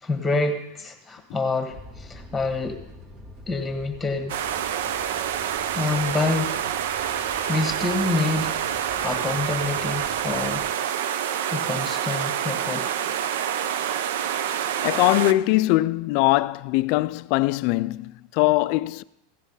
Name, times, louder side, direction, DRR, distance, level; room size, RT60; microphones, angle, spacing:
voice 1, 0.0-2.8 3.5-4.3 5.5-6.6 7.5-8.6 9.0-10.6 11.5-13.0, left 3 dB, 10° left, 1.5 m, -27 dB
sound 1, 1.7-10.7, left 1 dB, 45° right, 1.8 m, -46 dB
sound 2, 4.3-15.3, right 9 dB, 75° right, 0.6 m, -27 dB
voice 2, 14.8-19.0, left 18 dB, 55° left, 0.3 m, -21 dB
15.0 x 7.2 x 5.5 m
supercardioid pair, 130°, 0 cm